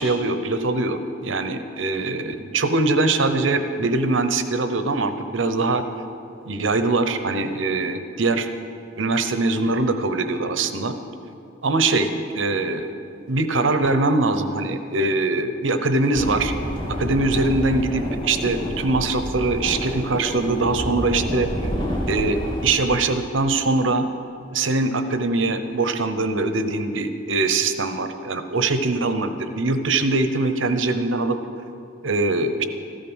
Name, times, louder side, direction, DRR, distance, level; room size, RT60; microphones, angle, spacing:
voice 1, 0.0-5.8 6.5-8.5 9.0-11.0 11.6-12.9 13.3-16.5 16.9-21.5 22.1-24.0 24.5-31.4 32.0-32.6, right 3 dB, 85° right, 9 dB, 0.9 m, -22 dB
sound 1, 16.1-22.7, equal, 25° left, 2.3 m, -29 dB
14.5 x 12.5 x 6.3 m, 2.5 s
head